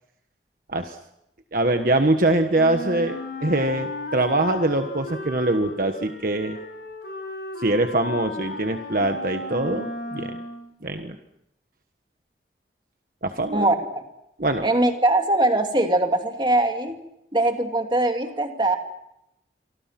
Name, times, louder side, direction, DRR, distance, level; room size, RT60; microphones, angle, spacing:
voice 1, 1.5-6.6 7.6-10.3 10.8-11.2 13.2-13.6 14.4-14.7, right 2 dB, 50° right, 6 dB, 1.4 m, -23 dB
Wind instrument woodwind instrument, 2.5-10.7, left 1 dB, 85° left, 6.8 m, -34 dB
voice 2, 13.5-14.0 14.6-16.9 17.3-18.8, right 2 dB, 25° right, 4 dB, 2.7 m, -21 dB
27.5 x 25.0 x 6.0 m, 0.82 s
head